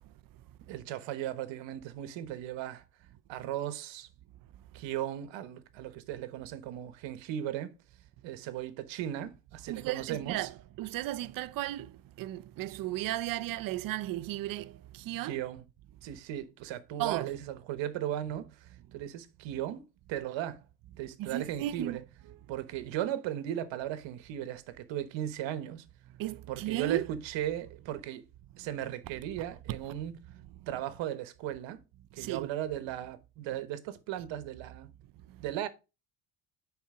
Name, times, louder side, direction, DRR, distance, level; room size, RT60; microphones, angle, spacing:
voice 1, 0.7-2.8 3.3-4.1 4.7-7.7 8.2-10.5 15.2-15.6 16.0-20.6 21.0-22.0 22.5-25.8 26.5-28.2 28.6-30.1 30.7-31.8 32.1-34.9 35.4-35.7, right 11 dB, 65° right, 1.2 m, -37 dB
voice 2, 9.7-10.5 10.8-15.4 17.0-17.3 21.2-22.0 26.2-27.0 29.7-29.8 32.2-32.5 35.3-35.4, right 15 dB, 45° right, 0.5 m, -35 dB
10.0 x 4.3 x 3.6 m
cardioid pair, 155°, 49 cm